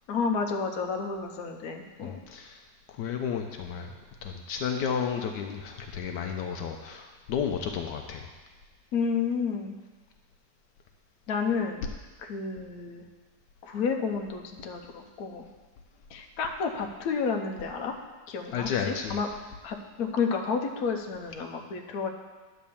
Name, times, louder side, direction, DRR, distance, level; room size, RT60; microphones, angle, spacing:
voice 1, 0.1-2.2 8.9-9.7 11.3-11.8 12.2-13.0 13.6-15.4 16.1-17.9 18.3-19.3 19.6-22.1, left 5 dB, 65° left, 3 dB, 1.2 m, -31 dB
voice 2, 2.0-2.6 2.9-3.9 4.2-8.3 18.5-19.2, left 7 dB, 80° left, 4 dB, 1.2 m, -32 dB
10.5 x 4.2 x 7.0 m, 1.3 s
omnidirectional pair, 1.9 m